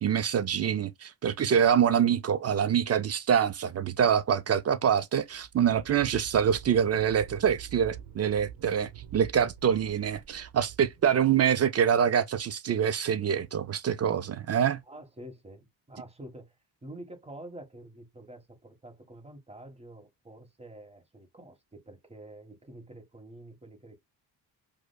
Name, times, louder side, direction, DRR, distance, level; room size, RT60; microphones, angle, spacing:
voice 1, 0.0-14.8, right 8 dB, 40° right, 0.4 m, -25 dB
sound 1, 5.3-11.7, right 9 dB, 65° right, 0.8 m, -46 dB
voice 2, 14.9-16.5 16.8-24.0, right 1 dB, 15° right, 1.4 m, -47 dB
4.9 x 2.2 x 2.2 m
cardioid pair, 110°, 42 cm